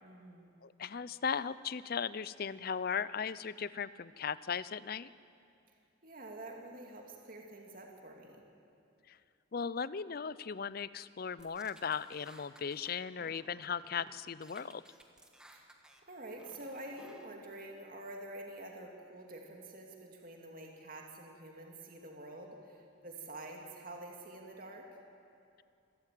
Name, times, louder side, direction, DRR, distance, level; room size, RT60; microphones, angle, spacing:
voice 1, 0.0-0.5 6.0-8.4 15.5-15.7 16.1-24.9, right 1 dB, 45° right, 1 dB, 2.4 m, -48 dB
voice 2, 0.6-5.1 9.1-9.2 9.5-14.8, left 6 dB, 45° left, 17 dB, 0.5 m, -37 dB
sound 1, 11.4-12.9 13.2-14.1 14.4-16.0 16.4-17.2, right 1 dB, 5° right, 1.4 m, -58 dB
26.5 x 13.5 x 9.2 m, 2.5 s
head